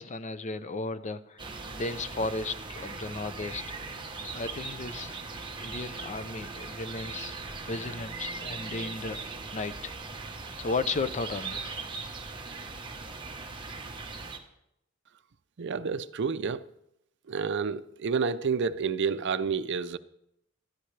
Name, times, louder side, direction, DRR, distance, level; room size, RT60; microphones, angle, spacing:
voice 1, 0.0-3.6 3.9-5.1 5.6-7.3 7.7-9.2 9.5-9.9 10.6-11.9, left 3 dB, 35° left, 0.6 m, -35 dB
sound 1, 1.4-14.4, right 3 dB, 25° right, 1.1 m, -39 dB
sound 2, 2.7-11.3, equal, 85° left, 4.4 m, -59 dB
voice 2, 15.6-16.7 17.3-20.0, right 5 dB, 55° right, 0.5 m, -29 dB
19.0 x 13.0 x 3.3 m
head